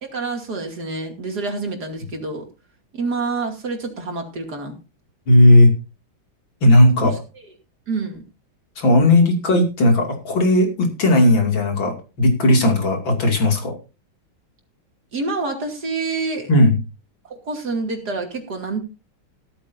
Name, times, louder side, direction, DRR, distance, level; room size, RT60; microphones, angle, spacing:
voice 1, 0.0-2.4 2.9-4.8 7.0-7.2 7.9-8.2 15.1-16.5 17.3-18.8, right 3 dB, 50° right, 2 dB, 3.1 m, -27 dB
voice 2, 5.3-5.7 6.6-7.1 8.8-13.8 16.5-16.8, left 1 dB, 70° left, 3 dB, 3.3 m, -15 dB
15.0 x 13.5 x 2.7 m, 0.30 s
omnidirectional pair, 2.2 m